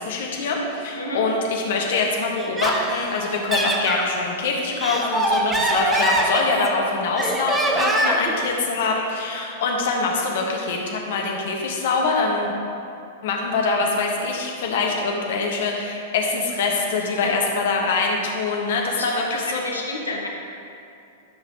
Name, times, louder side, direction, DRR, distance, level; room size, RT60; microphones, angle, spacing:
voice 1, 0.0-12.5 13.2-19.6, left 3 dB, 55° left, 0 dB, 1.3 m, -24 dB
voice 2, 0.9-1.3 8.0-8.2 17.0-17.4 18.9-20.3, left 2 dB, 80° left, -1 dB, 1.3 m, -31 dB
Laughter, 2.4-4.1 4.6-6.8 7.2-8.3, right 1 dB, 10° right, 0.8 m, -23 dB
13.0 x 5.6 x 3.0 m, 2.5 s
figure-of-eight pair, 95°, 0 cm